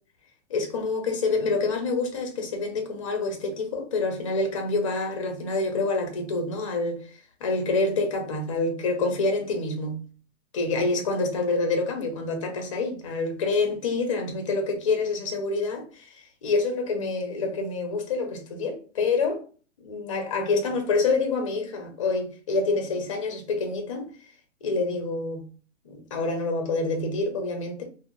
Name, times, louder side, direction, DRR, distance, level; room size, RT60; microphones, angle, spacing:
voice 1, 0.5-7.0 7.4-10.1 10.5-15.8 16.4-19.4 19.8-24.1 24.6-25.4 25.9-27.8, left 3 dB, 25° left, 0.5 m, -27 dB
3.6 x 2.0 x 2.3 m
hypercardioid pair, 150°, 38 cm